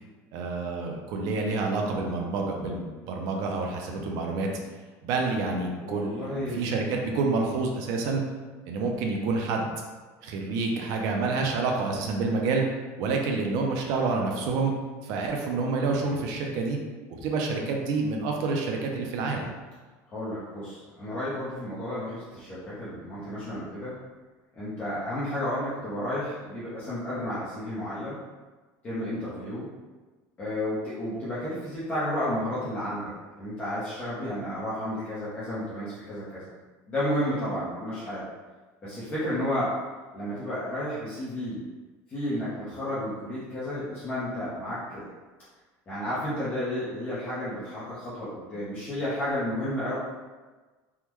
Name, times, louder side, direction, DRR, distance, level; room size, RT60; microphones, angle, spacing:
voice 1, 0.3-4.5 5.0-8.2 8.7-9.7 10.2-12.6 13.0-14.7 15.0-16.8 17.1-19.5, right 3 dB, 50° right, 1 dB, 0.5 m, -28 dB
voice 2, 5.8-6.6 20.1-23.9 24.6-28.1 28.8-29.7 30.4-33.1 33.4-36.4 36.9-38.3 38.8-39.7 40.1-41.6 42.1-45.1 45.9-49.9, left 1 dB, 20° left, -11 dB, 0.7 m, -32 dB
3.5 x 2.1 x 3.0 m, 1.3 s
cardioid pair, 175°, 7 cm